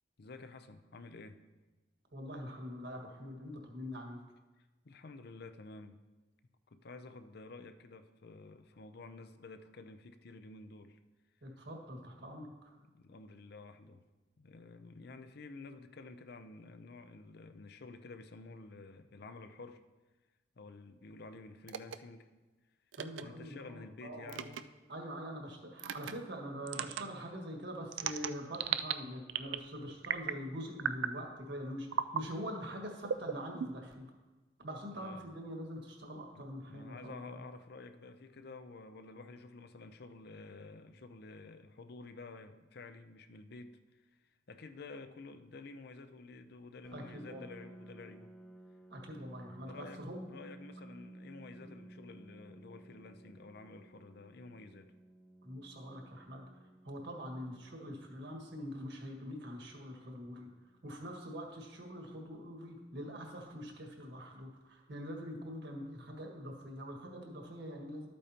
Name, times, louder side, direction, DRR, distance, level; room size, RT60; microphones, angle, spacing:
voice 1, 0.2-1.4 4.6-6.0 6.7-11.0 12.1-12.6 12.8-14.0 14.4-19.8 20.6-22.3 23.2-24.6 34.9-35.3 36.3-44.1 44.5-48.3 49.7-50.0 50.3-54.9, left 3 dB, 60° left, 10 dB, 0.6 m, -51 dB
voice 2, 2.1-4.2 11.4-12.7 23.0-24.6 24.9-34.0 34.6-37.4 46.9-47.4 48.9-50.3 51.6-51.7 55.4-56.4 56.8-60.5 60.8-68.1, equal, 65° right, 1 dB, 1.7 m, -44 dB
sound 1, 21.7-22.0 22.9-23.2 24.3-24.6 25.8-26.1 26.7-27.0 27.9-28.9 29.3-29.7 30.0-30.4 30.8-31.2 31.9-32.2 33.0-33.9, right 8 dB, 85° right, 0.4 m, -36 dB
Piano, 46.8-62.3, right 1 dB, 5° left, 0.7 m, -56 dB
12.5 x 8.5 x 2.9 m, 1.2 s
head